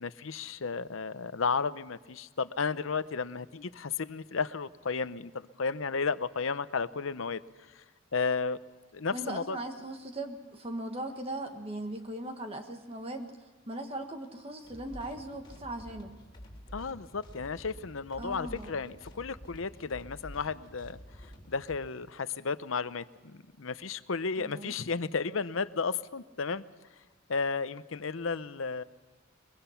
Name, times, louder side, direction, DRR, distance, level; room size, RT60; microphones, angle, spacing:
voice 1, 0.0-7.4 7.7-7.8 8.1-8.6 8.9-9.6 16.7-26.6 27.3-28.8, left 5 dB, 75° left, 14 dB, 0.7 m, -33 dB
voice 2, 9.1-16.1 18.2-18.8 24.4-24.7, right 1 dB, 30° right, 5 dB, 1.5 m, -39 dB
sound 1, 14.6-21.8, equal, 25° left, 3.6 m, -49 dB
23.0 x 22.0 x 5.8 m, 1.3 s
head